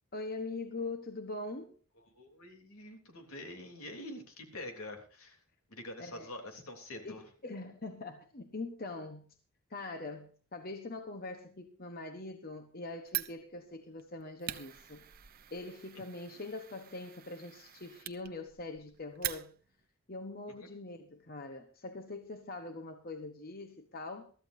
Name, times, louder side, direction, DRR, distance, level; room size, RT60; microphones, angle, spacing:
voice 1, 0.1-1.7 6.0-6.3 7.0-9.4 9.7-15.0 15.5-19.5 20.1-24.3, left 2 dB, 40° left, 1.1 m, -43 dB
voice 2, 2.1-5.4 5.7-7.2 20.6-20.7, left 1 dB, 75° left, 3.3 m, -46 dB
Fire, 13.1-19.9, right 13 dB, 40° right, 0.8 m, -43 dB
22.5 x 14.0 x 2.7 m
head